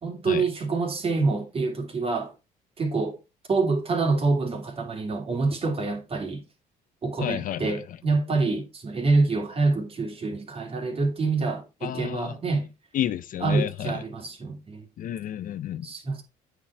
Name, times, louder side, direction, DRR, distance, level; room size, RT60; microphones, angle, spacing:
voice 1, 0.0-2.3 2.8-3.2 3.5-6.4 7.0-12.7 13.4-14.9 15.8-16.2, right 3 dB, 35° right, 2.8 m, -26 dB
voice 2, 7.2-7.8 11.8-12.3 12.9-14.0 15.0-15.9, left 11 dB, 55° left, 0.5 m, -31 dB
8.7 x 5.1 x 4.4 m
cardioid pair, 110°, 17 cm